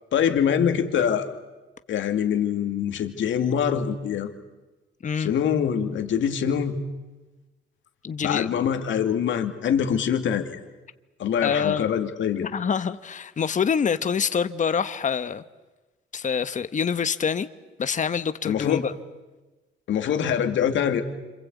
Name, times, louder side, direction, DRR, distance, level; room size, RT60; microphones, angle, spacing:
voice 1, 0.1-1.3 1.9-4.3 5.2-6.8 8.2-10.6 11.2-12.5 18.4-18.9 19.9-21.0, left 8 dB, 75° left, 6 dB, 2.5 m, -24 dB
voice 2, 8.0-8.5 11.4-11.9 12.3-15.4 16.1-17.5 17.8-18.9, left 6 dB, 40° left, 12 dB, 1.1 m, -26 dB
27.0 x 26.0 x 8.4 m, 1.2 s
cardioid pair, 90°, 20 cm